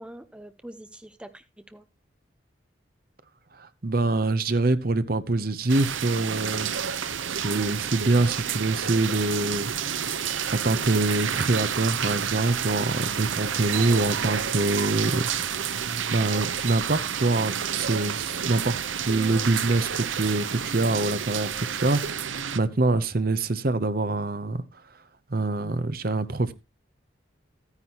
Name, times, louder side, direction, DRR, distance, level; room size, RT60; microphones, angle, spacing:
voice 1, 0.0-1.8 13.7-14.0 19.2-19.4, right 1 dB, 5° right, 0.8 m, -43 dB
voice 2, 3.5-15.2 16.1-24.6 25.3-26.5, right 2 dB, 50° right, 0.8 m, -25 dB
sound 1, 5.7-22.6, right 8 dB, 80° right, 0.8 m, -30 dB
13.0 x 9.8 x 2.9 m
head